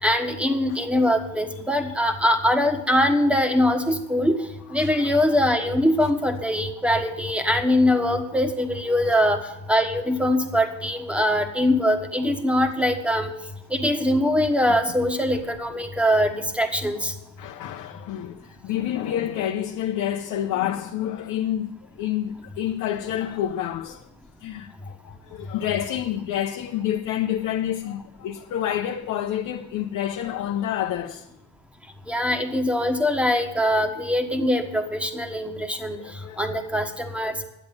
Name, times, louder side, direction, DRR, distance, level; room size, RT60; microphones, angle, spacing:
voice 1, 0.0-9.4 9.7-13.3 13.7-17.1 32.1-37.4, left 1 dB, 5° right, 1.5 m, -22 dB
voice 2, 17.4-21.7 22.0-24.1 24.4-31.3 36.0-36.5, left 11 dB, 85° left, 0.8 m, -28 dB
11.0 x 7.9 x 8.4 m
cardioid pair, 90°, 30 cm